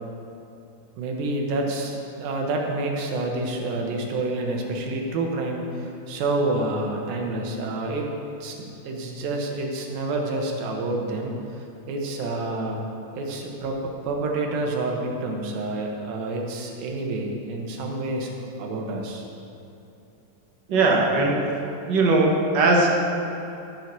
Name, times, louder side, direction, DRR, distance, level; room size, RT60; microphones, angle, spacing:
voice 1, 1.0-8.1 8.4-12.8 13.1-18.3 18.6-19.3, right 2 dB, 90° right, 1 dB, 3.0 m, -28 dB
voice 2, 20.7-21.4 21.9-22.9, right 3 dB, 60° right, -1 dB, 1.1 m, -19 dB
13.5 x 6.5 x 6.0 m, 2.9 s
omnidirectional pair, 4.0 m